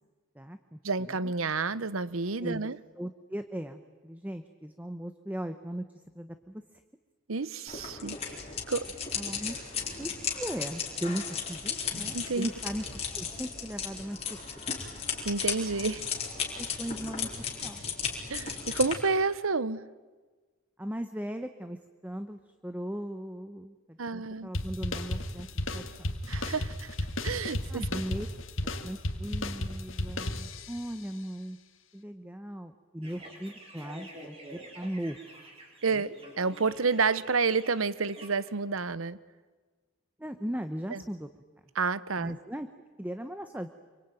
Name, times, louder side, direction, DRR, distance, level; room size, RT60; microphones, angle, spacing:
voice 1, 0.3-1.3 2.4-5.9 6.1-6.6 9.1-9.6 10.0-12.8 13.1-14.4 16.6-17.3 17.6-17.8 20.8-25.5 25.7-26.1 27.7-28.3 28.8-31.6 31.9-35.2 35.9-36.1 40.2-41.3 42.2-42.7 43.0-43.7, equal, 10° right, 0.9 m, -38 dB
voice 2, 0.8-2.8 7.3-8.4 8.7-8.9 12.1-12.5 15.2-16.0 18.3-19.8 24.0-24.5 26.3-26.9 27.2-27.8 35.8-39.2 40.9-41.0 41.8-42.4, right 4 dB, 85° right, 1.0 m, -29 dB
sound 1, 7.7-18.9, left 6 dB, 30° left, 4.3 m, -35 dB
sound 2, 24.5-30.9, left 1 dB, 75° left, 2.0 m, -34 dB
sound 3, 33.0-38.5, right 1 dB, 30° right, 4.8 m, -49 dB
27.0 x 24.5 x 9.2 m
head